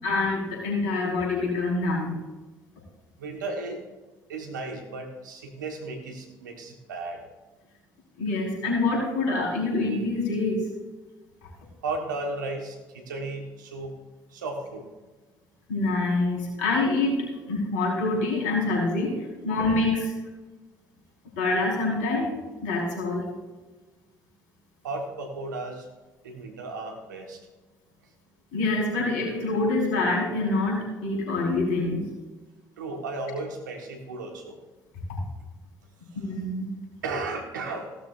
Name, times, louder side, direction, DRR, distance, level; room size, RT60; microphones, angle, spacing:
voice 1, 0.0-2.1 8.2-10.7 15.7-20.1 21.4-22.3 22.6-23.3 28.5-32.1 35.1-35.2 36.1-36.7, left 3 dB, 75° left, -3 dB, 4.8 m, -26 dB
voice 2, 3.2-3.8 4.3-7.2 11.8-14.0 14.3-14.9 24.8-25.9 26.2-27.5 32.8-34.6 37.0-38.0, right 3 dB, 85° right, 3 dB, 1.6 m, -34 dB
16.5 x 12.5 x 2.6 m, 1.2 s
hypercardioid pair, 50°, 10 cm